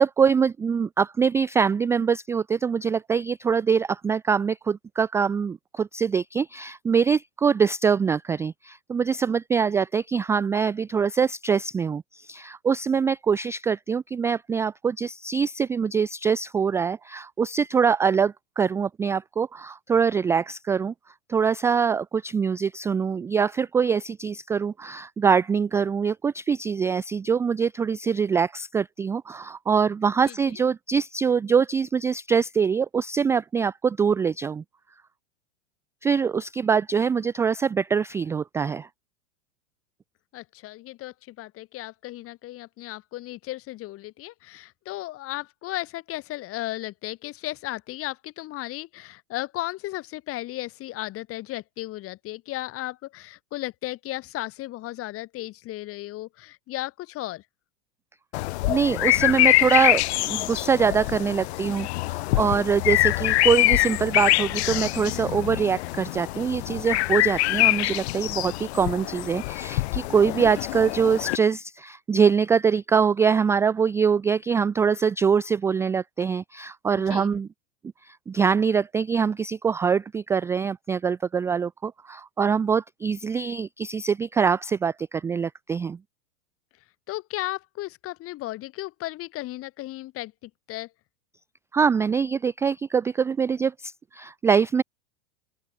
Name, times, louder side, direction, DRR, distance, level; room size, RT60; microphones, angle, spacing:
voice 1, 0.0-20.9 21.3-34.6 36.0-38.9 58.7-77.5 78.0-86.0 91.7-94.8, right 6 dB, 10° right, 0.3 m, -24 dB
voice 2, 40.3-57.4 77.1-77.3 87.1-90.9, left 17 dB, 40° left, 3.1 m, -35 dB
sound 1, 58.3-71.4, left 20 dB, 60° left, 4.8 m, -24 dB
open air
hypercardioid pair, 120°, 36 cm